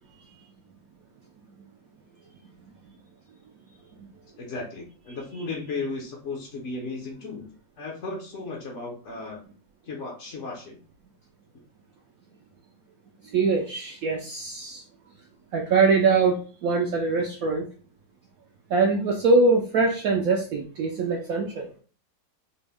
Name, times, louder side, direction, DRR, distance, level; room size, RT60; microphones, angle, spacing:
voice 1, 4.4-7.5 7.8-9.4 9.8-10.8, left 3 dB, 60° left, -1 dB, 0.7 m, -35 dB
voice 2, 13.2-14.8 15.5-17.7 18.7-21.7, right 4 dB, 75° right, 1 dB, 0.8 m, -23 dB
4.2 x 2.0 x 3.4 m, 0.40 s
omnidirectional pair, 2.0 m